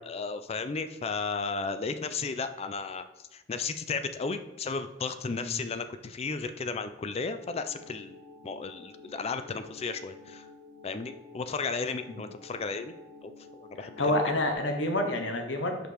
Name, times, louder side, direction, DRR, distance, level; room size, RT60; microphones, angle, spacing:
voice 1, 0.0-3.0 3.3-8.1 8.4-10.4 10.8-12.9 13.2-14.2, left 4 dB, 35° left, 10 dB, 0.4 m, -34 dB
voice 2, 5.2-5.6 12.1-12.2 13.8-15.9, left 1 dB, 80° left, 4 dB, 1.0 m, -29 dB
sound 1, 7.4-14.5, left 3 dB, 20° right, 1.3 m, -51 dB
5.1 x 4.4 x 4.8 m, 0.99 s
head